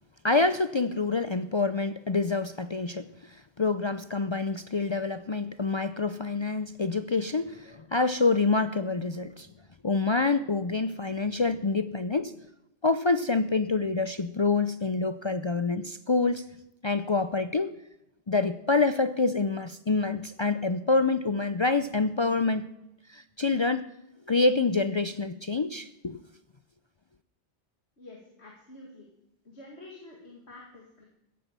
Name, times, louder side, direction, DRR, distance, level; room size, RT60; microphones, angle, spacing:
voice 1, 0.2-9.5 9.8-12.3 12.8-16.4 16.8-17.7 18.3-22.7 23.1-23.9 24.3-26.2, left 3 dB, 45° left, 12 dB, 0.4 m, -27 dB
voice 2, 28.0-29.1 29.4-31.0, left 2 dB, 75° left, -1 dB, 2.7 m, -48 dB
15.5 x 8.8 x 6.8 m, 0.85 s
omnidirectional pair, 1.1 m